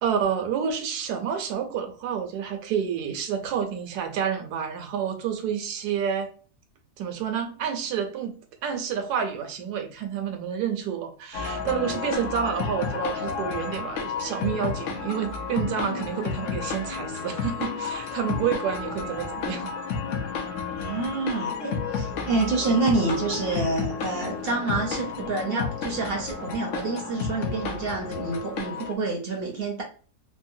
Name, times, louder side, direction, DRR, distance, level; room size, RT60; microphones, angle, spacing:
voice 1, 0.0-6.3 7.0-8.4 8.6-19.7 20.2-20.8, right 8 dB, 80° right, 4 dB, 1.2 m, -29 dB
sound 1, 11.3-28.9, left 5 dB, 65° left, 0.8 m, -31 dB
voice 2, 20.8-29.8, right 3 dB, 60° right, 1 dB, 0.6 m, -28 dB
3.2 x 2.1 x 2.6 m, 0.41 s
omnidirectional pair, 1.7 m